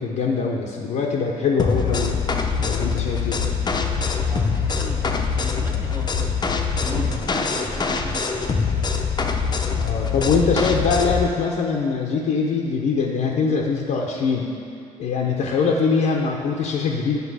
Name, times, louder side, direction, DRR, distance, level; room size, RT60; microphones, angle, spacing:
voice 1, 0.0-2.3 2.6-3.4 6.9-7.0 9.7-14.5 15.0-17.2, left 5 dB, 65° left, -1 dB, 0.7 m, -23 dB
sound 1, 1.6-11.3, left 5 dB, 30° left, 0.6 m, -23 dB
voice 2, 4.3-6.4 6.8-8.9, right 2 dB, 15° right, 1 dB, 0.9 m, -36 dB
8.1 x 4.9 x 4.8 m, 2.4 s
cardioid pair, 90°, 14 cm